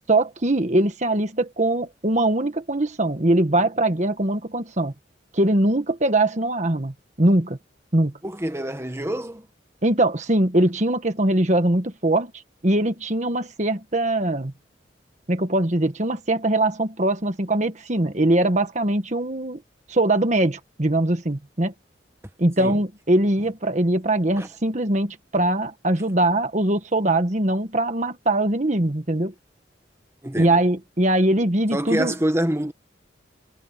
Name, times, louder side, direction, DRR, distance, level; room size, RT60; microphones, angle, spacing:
voice 1, 0.1-4.9 5.3-7.6 7.9-8.1 9.8-12.3 12.6-14.5 15.3-19.6 19.9-21.7 22.4-29.3 30.4-32.1, right 1 dB, 40° right, 1.5 m, -22 dB
voice 2, 8.2-9.5 22.6-22.8 24.4-24.5 30.2-30.6 31.7-32.7, right 1 dB, 15° right, 1.5 m, -26 dB
head